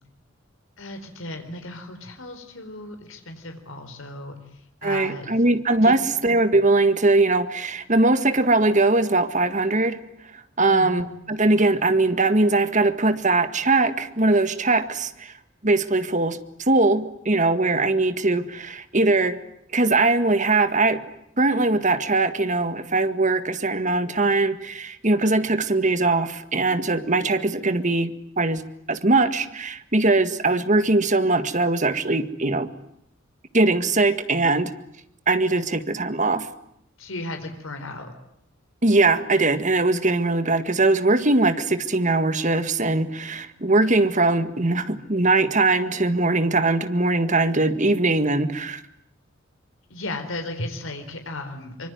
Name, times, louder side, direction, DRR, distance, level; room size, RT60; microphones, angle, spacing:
voice 1, 0.8-5.5 5.8-6.0 10.6-11.0 37.0-38.1 49.9-51.9, left 2 dB, 75° left, 6 dB, 4.3 m, -35 dB
voice 2, 4.8-10.0 10.3-15.3 15.6-19.4 19.7-21.0 21.4-28.6 28.9-32.7 33.5-34.7 35.3-36.5 38.8-48.8, right 2 dB, 35° right, 11 dB, 1.8 m, -21 dB
25.0 x 24.5 x 9.5 m, 0.76 s
head